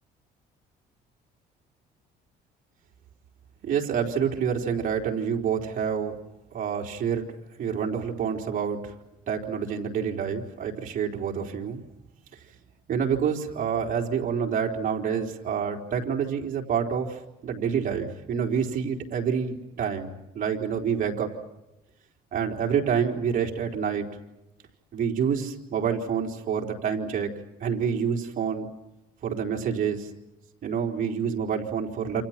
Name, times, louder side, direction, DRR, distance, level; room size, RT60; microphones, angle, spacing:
voice 1, 3.6-6.2 6.5-7.2 7.6-8.9 9.3-11.8 12.9-21.3 22.3-24.1 24.9-27.3 27.6-28.7 29.2-30.1 30.6-32.2, right 7 dB, 50° right, 1 dB, 4.1 m, -27 dB
28.5 x 27.5 x 6.0 m, 0.95 s
cardioid pair, 110°, 17 cm